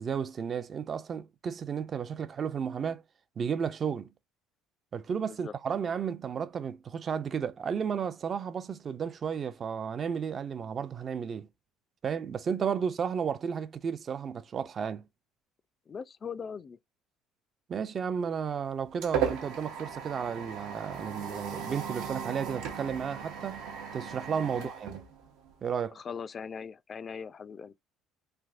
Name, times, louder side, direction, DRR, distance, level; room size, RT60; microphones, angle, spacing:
voice 1, 0.0-3.0 3.4-4.1 4.9-11.5 12.0-15.0 17.7-23.7 23.9-25.1 25.6-26.0, right 7 dB, 40° right, 0.4 m, -33 dB
voice 2, 5.2-5.5 15.9-16.8 24.5-24.7 26.0-27.8, left 6 dB, 35° left, 0.3 m, -40 dB
sound 1, 18.3-25.7, right 7 dB, 80° right, 0.7 m, -37 dB
3.3 x 2.6 x 2.4 m
cardioid pair, 105°, 0 cm